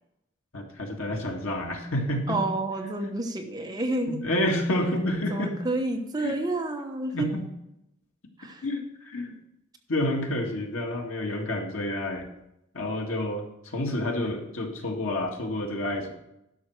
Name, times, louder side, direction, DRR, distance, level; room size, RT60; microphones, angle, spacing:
voice 1, 0.5-2.4 4.1-5.6 6.2-6.3 7.1-7.5 8.6-9.3 9.9-12.3 12.7-16.1, left 1 dB, 90° left, 2 dB, 1.9 m, -29 dB
voice 2, 2.3-4.2 5.3-7.3 8.4-8.7, right 2 dB, 20° right, 3 dB, 1.0 m, -29 dB
11.0 x 6.1 x 6.2 m, 0.84 s
head